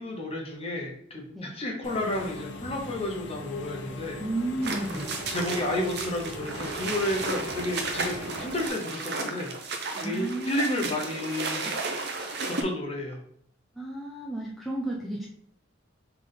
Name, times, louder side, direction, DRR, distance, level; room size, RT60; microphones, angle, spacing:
voice 1, 0.0-4.2 4.9-9.5 9.9-11.7 12.4-13.2, left 1 dB, 30° left, 0 dB, 0.9 m, -31 dB
Engine / Mechanisms, 1.8-8.7, left 1 dB, 65° left, 0.5 m, -40 dB
voice 2, 4.2-5.0 9.9-10.9 13.8-15.3, right 1 dB, ahead, -4 dB, 0.6 m, -32 dB
sound 1, 4.6-12.6, right 3 dB, 55° right, 0.6 m, -34 dB
3.7 x 3.3 x 3.8 m, 0.65 s
head